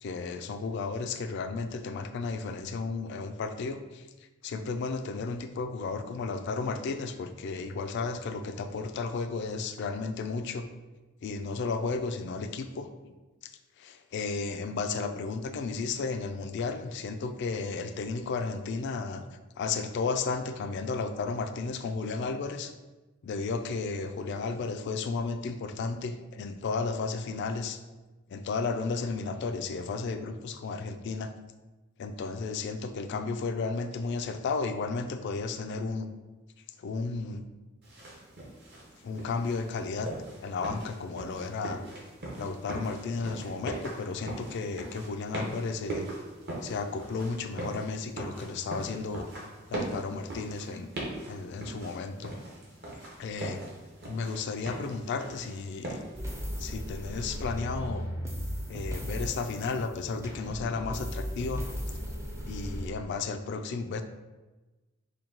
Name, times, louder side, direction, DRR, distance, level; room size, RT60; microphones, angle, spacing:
voice 1, 0.0-4.1 4.4-10.7 11.2-13.1 13.8-19.2 19.6-22.7 23.2-27.8 28.3-31.3 32.0-36.1 36.8-37.4 39.0-40.1 40.4-41.8 42.4-46.1 46.6-49.3 49.7-50.9 51.3-52.3 53.2-53.6 54.1-56.0 56.6-58.0 58.7-61.6 62.5-64.0, left 4 dB, 55° left, 8 dB, 0.3 m, -33 dB
sound 1, 37.8-56.2, right 1 dB, 50° right, 0.9 m, -41 dB
sound 2, 56.1-62.9, equal, 15° right, 0.5 m, -36 dB
4.3 x 2.2 x 3.8 m, 1.2 s
head